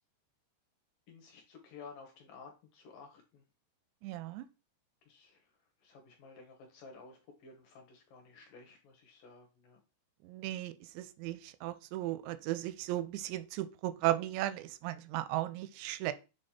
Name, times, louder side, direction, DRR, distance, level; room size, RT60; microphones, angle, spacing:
voice 1, 1.1-3.4 5.1-9.8, left 4 dB, 65° left, 2.3 m, -54 dB
voice 2, 4.0-4.5 10.2-16.1, right 15 dB, 90° right, 2.8 m, -36 dB
7.2 x 3.3 x 4.3 m
omnidirectional pair, 4.9 m